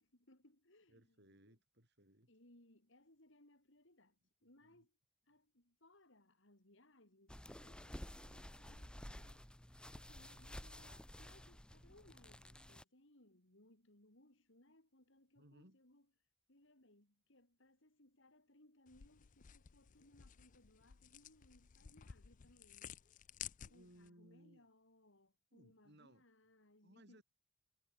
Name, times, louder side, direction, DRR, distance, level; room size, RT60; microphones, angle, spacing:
voice 1, 0.0-1.6 2.3-4.9 5.3-9.6 9.9-16.1 16.5-23.1 23.7-27.2, left 1 dB, 60° left, 4.3 m, -68 dB
voice 2, 0.9-2.3 4.4-4.9 15.3-15.8 23.6-24.7 25.5-26.2 26.8-27.2, right 1 dB, 55° right, 7.9 m, -65 dB
sound 1, 7.3-12.8, equal, 5° left, 0.9 m, -53 dB
sound 2, 18.9-24.1, left 10 dB, 40° left, 0.4 m, -54 dB
head